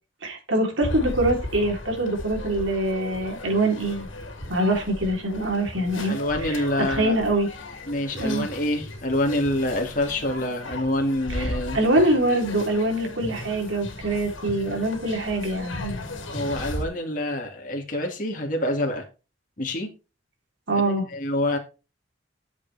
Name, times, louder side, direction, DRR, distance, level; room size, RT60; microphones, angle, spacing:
voice 1, 0.2-4.1 4.5-6.2 6.5-7.5 8.2-8.5 11.3-16.0 20.7-21.1, right 1 dB, 75° right, 3.7 m, -24 dB
sound 1, 0.8-16.8, left 1 dB, 85° left, 2.6 m, -36 dB
voice 2, 6.1-7.2 7.9-11.8 16.3-19.0 19.6-19.9 20.7-21.6, left 1 dB, 40° left, 2.2 m, -26 dB
11.0 x 7.5 x 3.5 m
head